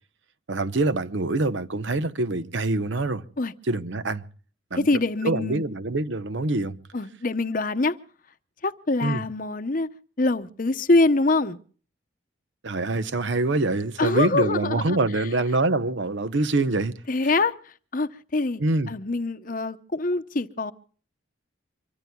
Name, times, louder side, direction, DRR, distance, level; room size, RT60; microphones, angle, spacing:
voice 1, 0.5-3.2 3.7-4.2 4.7-4.9 5.2-6.8 9.0-9.2 12.6-17.0 18.6-18.9, right 2 dB, 65° right, 0.8 m, -25 dB
voice 2, 4.8-5.6 6.9-8.0 8.6-9.9 10.2-11.6 14.0-15.0 17.1-18.6 18.9-20.7, left 2 dB, 40° left, 0.8 m, -24 dB
25.5 x 23.5 x 2.3 m
head